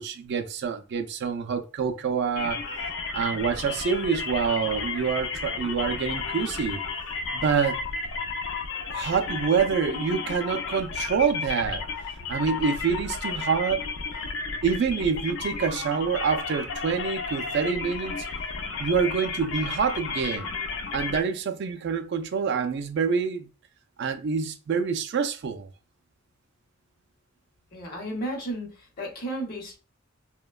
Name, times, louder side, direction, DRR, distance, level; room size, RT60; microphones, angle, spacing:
voice 1, 0.0-2.6 3.1-6.8 7.3-7.8 8.9-11.8 12.3-13.8 14.6-18.3 18.8-20.5 20.9-23.5 24.0-25.7, right 6 dB, 55° right, 0.3 m, -26 dB
sound 1, 2.4-21.2, left 4 dB, 70° left, 0.4 m, -33 dB
voice 2, 27.7-29.8, right 1 dB, 45° left, 0.8 m, -33 dB
2.9 x 2.2 x 2.3 m
head